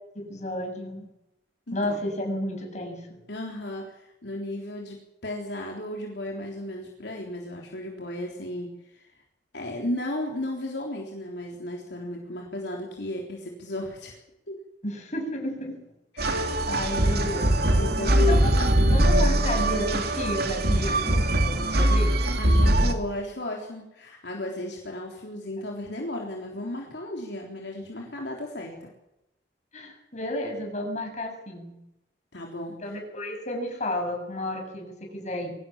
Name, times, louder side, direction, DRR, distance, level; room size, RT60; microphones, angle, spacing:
voice 1, 0.1-1.1 1.7-3.2 14.8-15.8 16.2-17.6 18.1-18.5 18.8-22.1 29.7-31.7 32.8-35.5, left 1 dB, 40° left, 3 dB, 7.7 m, -32 dB
voice 2, 1.7-2.0 3.3-9.1 9.5-14.2 14.5-14.6 16.1-16.3 17.8-18.5 22.4-28.9 32.3-33.0, left 1 dB, 70° left, 0 dB, 3.7 m, -35 dB
sound 1, 16.2-22.9, right 1 dB, 60° right, 2.8 m, -22 dB
23.5 x 18.0 x 7.4 m, 0.86 s
head